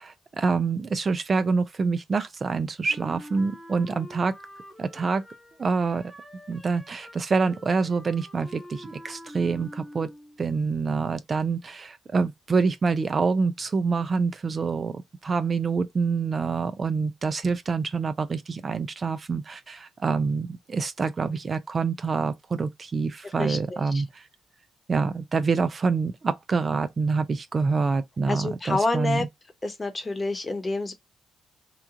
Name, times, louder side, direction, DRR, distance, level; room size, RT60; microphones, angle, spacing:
voice 1, 0.0-4.3 4.8-5.2 5.6-6.0 6.5-10.1 10.4-24.3 24.9-29.3, right 4 dB, 35° right, 0.4 m, -26 dB
Wind instrument woodwind instrument, 2.9-10.4, equal, 10° right, 0.9 m, -46 dB
voice 2, 23.4-24.0 28.3-29.3 29.6-30.9, left 2 dB, 25° left, 0.9 m, -28 dB
3.0 x 2.3 x 3.7 m
cardioid pair, 90°, 0 cm